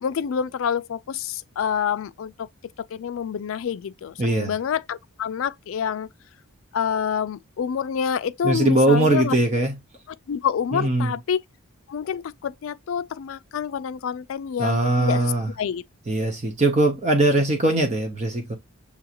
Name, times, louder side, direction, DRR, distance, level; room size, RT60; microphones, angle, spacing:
voice 1, 0.0-2.5 2.9-6.1 6.7-9.4 10.3-11.4 11.9-15.3 15.6-15.8, left 7 dB, 70° left, 0.3 m, -27 dB
voice 2, 4.2-4.5 8.4-9.8 10.7-11.1 14.6-15.5 16.1-18.5, right 2 dB, 30° right, 0.6 m, -21 dB
6.9 x 2.4 x 2.8 m
head